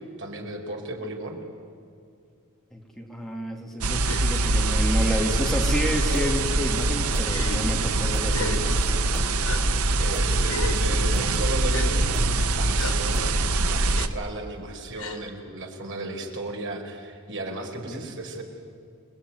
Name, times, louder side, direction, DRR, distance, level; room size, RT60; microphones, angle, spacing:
voice 1, 0.2-1.4 10.0-18.4, right 2 dB, 60° right, 2 dB, 4.7 m, -35 dB
voice 2, 2.7-9.0 17.9-18.0, equal, ahead, 1 dB, 2.6 m, -30 dB
sound 1, 3.8-14.1, right 2 dB, 90° right, 1.2 m, -23 dB
Gasp, 4.0-4.2 5.1-5.2 6.0-6.4 7.3-7.6 8.3-8.6 9.4-9.6 10.5-10.8 11.7-11.9 12.8-13.0 13.9-14.1 15.0-15.2, left 4 dB, 85° left, 3.1 m, -34 dB
sound 2, 5.6-13.5, right 1 dB, 15° right, 4.1 m, -43 dB
29.5 x 20.0 x 9.7 m, 2.4 s
head